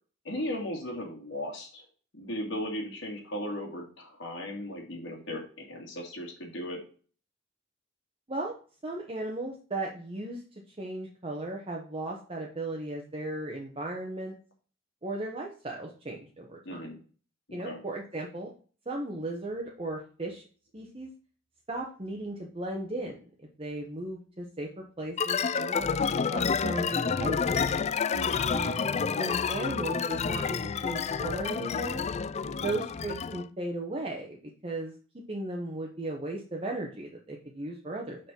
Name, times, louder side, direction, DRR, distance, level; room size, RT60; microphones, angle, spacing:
voice 1, 0.2-1.8 2.1-6.8 16.7-17.0 17.5-17.8 28.1-28.5 32.4-32.7, left 1 dB, 65° left, -1 dB, 2.3 m, -37 dB
voice 2, 8.8-10.4 10.8-14.3 15.0-16.8 17.5-18.5 18.9-20.4 20.7-21.1 21.7-25.9 26.3-27.6 28.5-32.1 32.6-34.9 35.3-38.2, right 2 dB, 30° right, -1 dB, 1.1 m, -36 dB
sound 1, 25.2-33.5, left 6 dB, 35° left, 0.3 m, -29 dB
6.4 x 5.8 x 4.5 m, 0.40 s
head